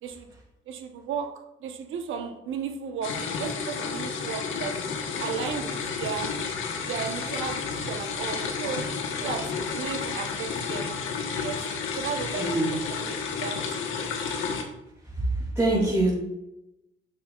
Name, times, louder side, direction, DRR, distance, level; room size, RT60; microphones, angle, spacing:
voice 1, 0.7-4.8 5.2-6.3 6.9-8.9 9.2-10.9 11.4-11.7 11.9-13.6, right 7 dB, 85° right, 6 dB, 1.0 m, -34 dB
sound 1, 3.0-14.6, left 5 dB, 85° left, 1.2 m, -31 dB
voice 2, 12.4-12.8 15.6-16.2, right 2 dB, 15° right, -6 dB, 2.7 m, -23 dB
9.8 x 6.5 x 2.4 m, 0.90 s
cardioid pair, 90°, 20 cm